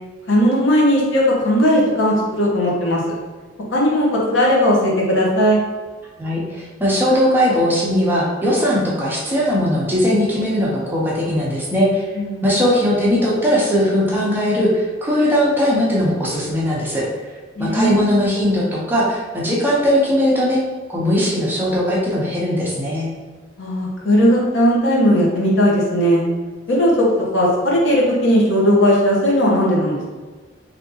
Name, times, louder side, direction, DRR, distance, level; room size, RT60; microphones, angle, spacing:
voice 1, 0.3-3.0 3.7-5.6 12.1-12.5 17.6-18.1 23.6-26.2 26.7-27.1 27.3-30.1, equal, 65° left, -3 dB, 0.8 m, -17 dB
voice 2, 6.2-12.0 12.4-17.0 17.6-20.6 20.9-23.1, equal, 10° right, -6 dB, 0.6 m, -19 dB
3.4 x 2.7 x 2.7 m, 1.4 s
head